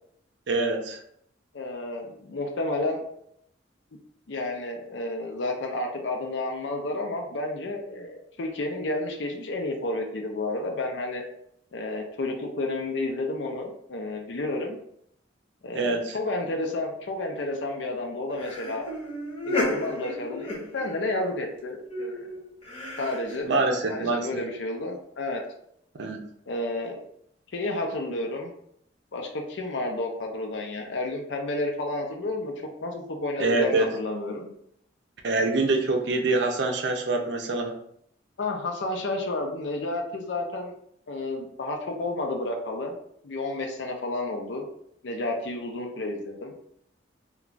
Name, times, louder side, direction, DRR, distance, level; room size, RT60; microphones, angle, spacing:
voice 1, 0.5-1.0 15.7-16.2 23.4-24.3 26.0-26.2 33.4-33.9 35.2-37.7, right 3 dB, 60° right, 3 dB, 0.5 m, -25 dB
voice 2, 1.5-3.0 4.3-11.2 11.7-14.8 15.6-18.9 19.4-22.3 23.0-23.5 23.9-25.4 26.5-27.0 27.5-28.5 29.1-32.5 32.8-34.5 38.4-40.7 41.1-43.0 43.2-44.7 45.0-46.5, left 2 dB, 65° left, 2 dB, 0.5 m, -31 dB
sound 1, 18.3-21.3 21.9-23.4, left 1 dB, 30° left, 0.8 m, -33 dB
2.3 x 2.3 x 3.8 m, 0.71 s
head